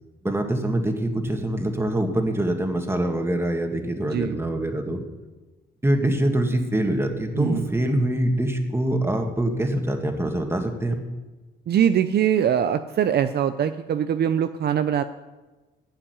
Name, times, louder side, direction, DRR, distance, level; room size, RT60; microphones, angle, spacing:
voice 1, 0.2-5.0 5.8-11.0, right 1 dB, 10° right, 4 dB, 2.1 m, -24 dB
voice 2, 4.0-4.3 7.3-7.7 11.7-15.0, right 9 dB, 55° right, 10 dB, 0.6 m, -22 dB
15.0 x 5.9 x 9.9 m, 1.2 s
cardioid pair, 90°, 20 cm